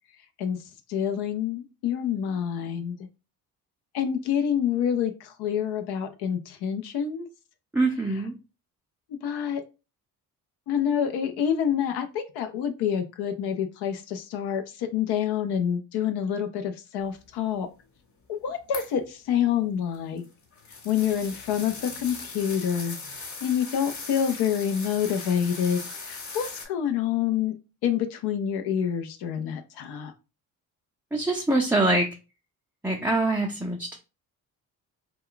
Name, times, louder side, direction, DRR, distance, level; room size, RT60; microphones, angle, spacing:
voice 1, 0.9-3.0 3.9-7.3 9.2-9.6 10.7-17.7 18.3-20.3 20.8-27.5 27.8-30.1, left 8 dB, 75° left, 7 dB, 0.5 m, -27 dB
voice 2, 7.7-8.3 31.1-32.1 32.8-34.0, right 2 dB, 5° right, -2 dB, 0.4 m, -24 dB
sound 1, 18.7-19.0 19.9-26.6, left 4 dB, 45° left, 1.1 m, -39 dB
2.3 x 2.2 x 3.6 m, 0.30 s
supercardioid pair, 65°, 39 cm